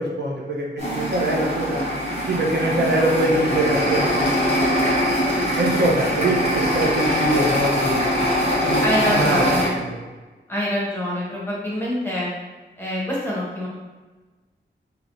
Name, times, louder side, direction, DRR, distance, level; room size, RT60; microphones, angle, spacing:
voice 1, 0.0-1.8 2.3-5.0 5.6-8.0 8.6-9.4 9.7-10.0, right 1 dB, 60° right, -2 dB, 0.8 m, -23 dB
sound 1, 0.8-9.7, equal, 30° right, 1.2 m, -22 dB
voice 2, 8.8-9.8 10.5-12.3 12.8-13.7, equal, 10° left, -6 dB, 0.8 m, -25 dB
3.2 x 2.9 x 2.6 m, 1.3 s
wide cardioid pair, 85°, 20 cm